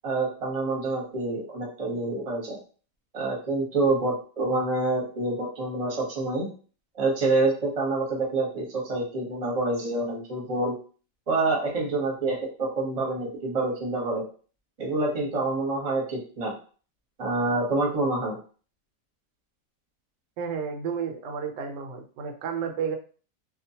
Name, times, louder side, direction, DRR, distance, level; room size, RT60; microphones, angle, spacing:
voice 1, 0.0-2.6 3.1-6.5 6.9-10.8 11.3-14.2 14.8-16.5 17.2-18.4, right 2 dB, 30° right, -2 dB, 0.7 m, -27 dB
voice 2, 20.4-23.0, right 6 dB, 85° right, 4 dB, 1.2 m, -31 dB
2.8 x 2.1 x 2.7 m, 0.39 s
omnidirectional pair, 1.8 m